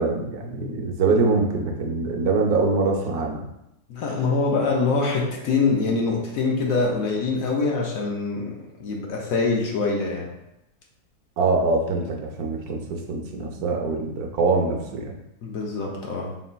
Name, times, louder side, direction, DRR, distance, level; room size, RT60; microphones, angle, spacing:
voice 1, 0.0-3.4 11.4-15.2, right 3 dB, 75° right, 1 dB, 1.2 m, -24 dB
voice 2, 3.9-10.3 15.4-16.3, left 4 dB, 65° left, -1 dB, 1.1 m, -24 dB
4.0 x 4.0 x 2.2 m, 0.86 s
omnidirectional pair, 1.7 m